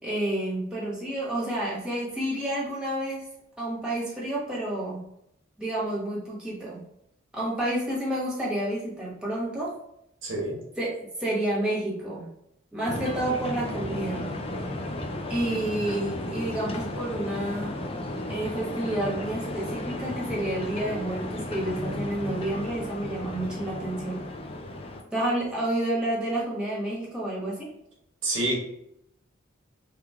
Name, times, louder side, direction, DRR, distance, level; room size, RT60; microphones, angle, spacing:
voice 1, 0.0-3.3 3.6-5.0 5.6-6.8 7.3-9.7 10.8-10.9 11.2-12.3 12.7-14.3 15.3-17.7 18.3-24.3 25.1-27.7, right 1 dB, 5° right, -7 dB, 1.2 m, -30 dB
voice 2, 10.2-10.6 28.2-28.6, right 1 dB, 75° right, -2 dB, 1.2 m, -27 dB
sound 1, 12.9-25.0, left 1 dB, 30° left, 0.4 m, -34 dB
3.6 x 3.0 x 3.6 m, 0.79 s
head